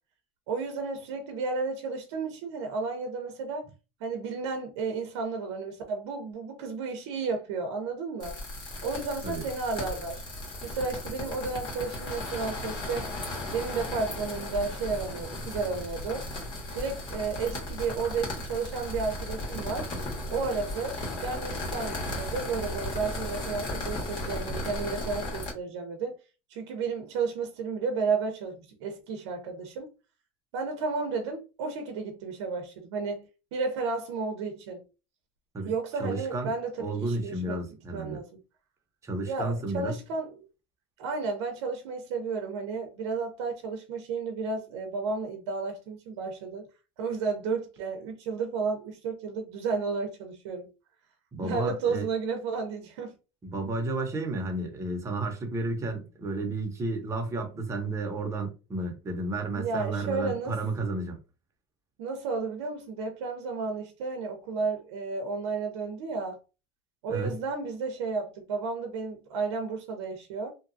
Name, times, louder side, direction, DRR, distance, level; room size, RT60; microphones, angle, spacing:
voice 1, 0.5-3.7 4.0-8.4 8.8-10.3 10.6-13.1 13.5-16.3 16.7-19.9 20.3-26.2 26.5-29.9 30.5-34.8 35.6-38.4 39.2-40.3 41.0-46.7 47.0-50.7 51.4-53.1 59.5-60.6 62.0-66.4 67.0-70.5, right 4 dB, 85° right, 0.6 m, -32 dB
sound 1, 8.2-25.5, left 1 dB, 35° left, 1.4 m, -36 dB
voice 2, 36.0-36.5 36.8-38.2 39.0-39.9 51.3-52.1 53.4-61.2 67.1-67.4, right 2 dB, 20° right, 0.8 m, -32 dB
2.8 x 2.3 x 2.6 m
supercardioid pair, 135°, 14 cm